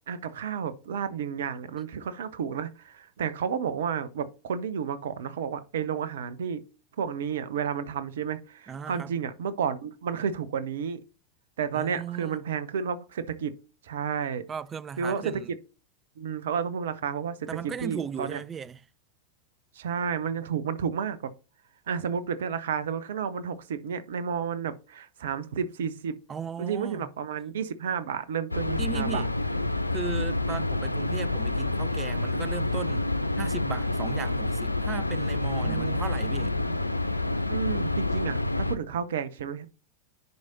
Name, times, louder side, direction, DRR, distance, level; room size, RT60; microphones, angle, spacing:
voice 1, 0.1-6.6 7.0-11.0 11.6-13.5 13.8-14.4 15.0-15.6 16.2-18.4 19.7-21.3 21.9-26.2 26.6-29.2 35.6-36.8 37.5-39.7, right 7 dB, 60° right, 0.8 m, -31 dB
voice 2, 8.7-9.1 11.7-12.4 14.5-15.5 17.5-18.8 26.3-27.1 28.8-29.3 29.9-33.1 33.4-36.6, right 7 dB, 20° right, 0.4 m, -37 dB
sound 1, 28.5-38.8, left 2 dB, 85° left, 0.4 m, -28 dB
10.5 x 4.8 x 2.8 m
figure-of-eight pair, 90°, 0 cm